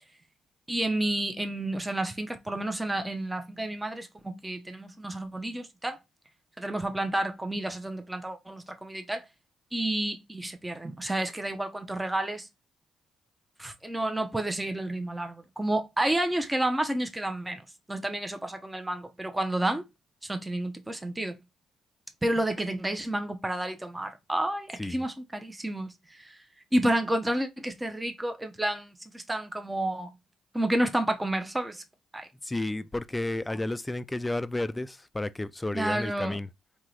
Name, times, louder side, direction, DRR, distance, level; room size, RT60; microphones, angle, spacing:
voice 1, 0.7-6.0 6.6-9.2 9.7-12.5 13.6-17.6 17.9-19.8 20.2-21.4 22.2-26.4 26.7-30.1 30.5-31.8 32.1-32.3 35.7-36.4, right 1 dB, 10° right, 0.7 m, -30 dB
voice 2, 32.4-36.5, left 2 dB, 15° left, 0.4 m, -32 dB
3.7 x 2.8 x 3.1 m
supercardioid pair, 65°, 0 cm